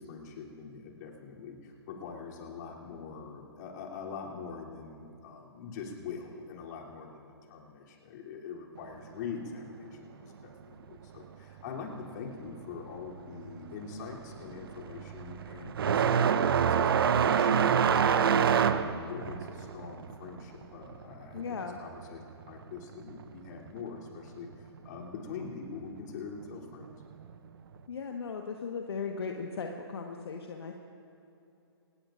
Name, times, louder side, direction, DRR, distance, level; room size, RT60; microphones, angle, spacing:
voice 1, 0.0-26.9, left 5 dB, 40° left, -2 dB, 3.1 m, -43 dB
sound 1, 13.2-13.5 13.8-22.1 22.4-23.5 24.4-24.5 25.4-25.5 27.2-27.3, right 7 dB, 60° right, 0.8 m, -26 dB
voice 2, 21.3-21.8 27.9-30.7, left 5 dB, 65° left, 2 dB, 1.3 m, -37 dB
26.0 x 19.5 x 2.5 m, 2.8 s
figure-of-eight pair, 130°, 14 cm